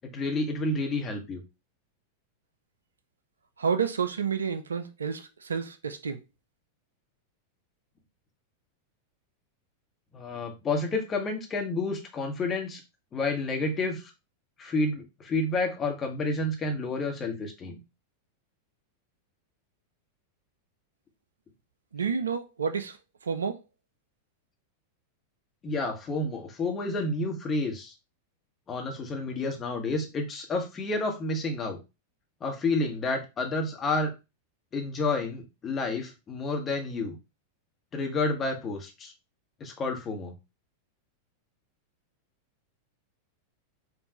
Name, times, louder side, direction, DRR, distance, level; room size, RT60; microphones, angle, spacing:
voice 1, 0.1-1.4 10.1-12.8 13.1-14.1 14.6-17.8 25.6-27.9 28.7-31.8 32.4-34.1 34.7-37.2 37.9-39.1 39.6-40.3, left 2 dB, 25° left, 1.1 m, -30 dB
voice 2, 3.6-6.2 21.9-23.0 23.2-23.6, right 6 dB, 70° right, 0.4 m, -30 dB
5.2 x 2.5 x 2.8 m
figure-of-eight pair, 90°, 0 cm